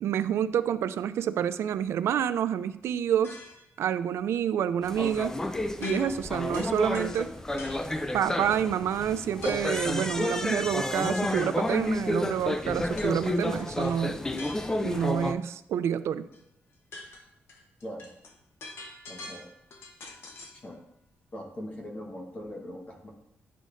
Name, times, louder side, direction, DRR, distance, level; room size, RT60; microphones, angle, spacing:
voice 1, 0.0-3.4 3.8-5.4 5.8-7.3 8.1-14.2 14.8-16.3, right 9 dB, 80° right, 13 dB, 0.3 m, -28 dB
sound 1, 3.2-3.8 5.8-6.3 6.5-7.9 9.4-9.8 13.0-13.2 13.6-15.0 16.3-16.4 16.7-20.6, left 3 dB, 65° left, 0.9 m, -45 dB
sound 2, 4.8-15.3, left 1 dB, 10° left, 0.4 m, -30 dB
voice 2, 19.1-19.5 20.6-20.8 21.3-23.1, equal, 30° left, 0 dB, 1.1 m, -40 dB
10.0 x 5.1 x 2.5 m, 0.78 s
wide cardioid pair, 145°, 4 cm